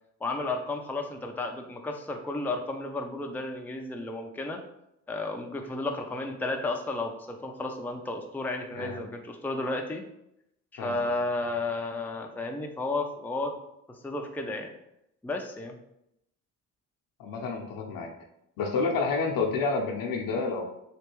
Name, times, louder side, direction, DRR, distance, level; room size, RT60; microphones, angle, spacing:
voice 1, 0.2-4.6 5.1-10.0 10.7-13.5 13.9-14.7 15.2-15.8, left 2 dB, 5° left, 3 dB, 0.5 m, -33 dB
voice 2, 8.7-9.1 10.8-11.1 11.4-11.5 17.2-18.1 18.6-20.7, left 4 dB, 70° left, 1 dB, 0.8 m, -29 dB
3.3 x 2.9 x 3.0 m, 0.81 s
supercardioid pair, 60°, 36 cm